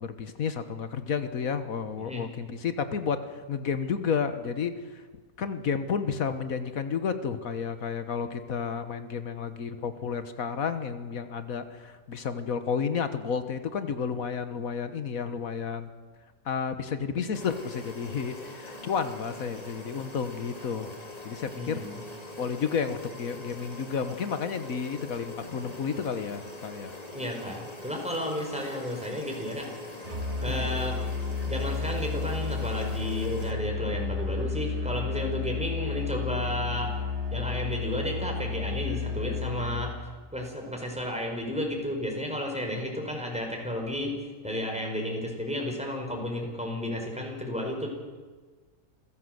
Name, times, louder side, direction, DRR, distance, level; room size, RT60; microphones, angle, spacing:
voice 1, 0.0-5.0 5.4-15.9 16.4-20.9 21.2-21.8 22.4-27.0 30.5-30.7, left 6 dB, 75° left, 10 dB, 1.7 m, -31 dB
voice 2, 2.0-2.3 21.5-21.9 27.1-29.7 30.4-31.1 31.5-36.9 37.3-40.0 40.3-44.2 44.4-47.9, left 1 dB, 5° right, 1 dB, 5.0 m, -32 dB
sound 1, 17.3-33.5, left 2 dB, 25° left, 3.0 m, -43 dB
Musical instrument, 30.0-40.0, left 4 dB, 50° right, 2.7 m, -32 dB
27.5 x 16.0 x 8.0 m, 1.4 s
omnidirectional pair, 1.5 m